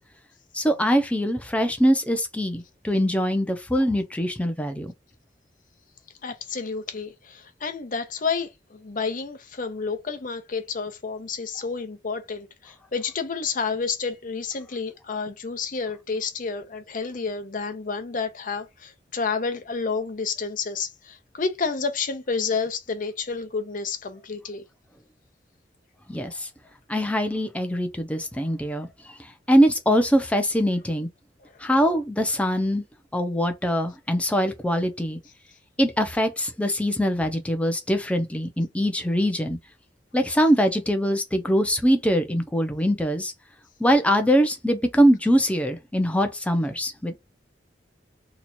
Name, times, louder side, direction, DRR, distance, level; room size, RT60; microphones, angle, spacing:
voice 1, 0.5-4.9 26.1-26.5 26.9-31.1 31.6-32.8 33.1-35.2 35.8-39.6 40.1-43.3 43.8-47.2, equal, 10° left, 0.7 m, -23 dB
voice 2, 6.2-24.6, left 5 dB, 50° left, 0.7 m, -30 dB
3.0 x 2.4 x 4.2 m
head